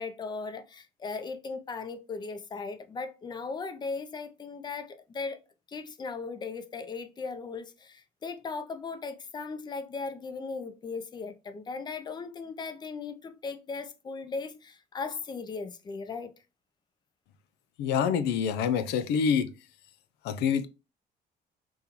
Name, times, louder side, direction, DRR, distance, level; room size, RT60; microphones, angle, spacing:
voice 1, 0.0-5.4 5.7-16.3, left 4 dB, 25° left, 0.5 m, -37 dB
voice 2, 17.8-19.5 20.2-20.7, left 7 dB, 85° left, 0.5 m, -26 dB
5.3 x 2.3 x 2.9 m
cardioid pair, 110°, 17 cm